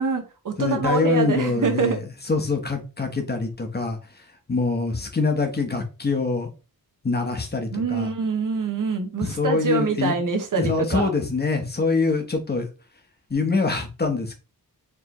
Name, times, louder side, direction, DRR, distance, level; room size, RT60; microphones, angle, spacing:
voice 1, 0.0-2.0 7.7-11.1, right 4 dB, 55° right, 1.0 m, -25 dB
voice 2, 0.6-2.0 2.3-4.0 4.5-6.5 7.0-8.1 9.2-10.1 10.6-12.7 13.3-14.3, left 4 dB, 25° left, 0.9 m, -24 dB
4.6 x 3.1 x 3.0 m
wide cardioid pair, 160°, 37 cm